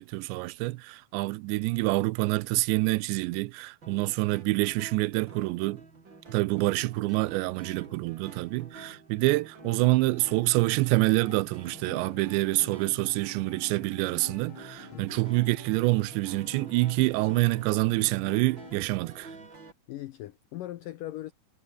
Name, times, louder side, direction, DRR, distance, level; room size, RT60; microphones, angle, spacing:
voice 1, 0.0-5.8 6.3-19.3, right 21 dB, 85° right, 2.9 m, -27 dB
sound 1, 3.8-19.7, right 3 dB, 25° right, 4.5 m, -49 dB
sound 2, 9.6-18.8, left 8 dB, 55° left, 1.4 m, -49 dB
voice 2, 14.9-15.2 19.9-21.3, left 14 dB, 80° left, 1.9 m, -39 dB
omnidirectional pair, 5.0 m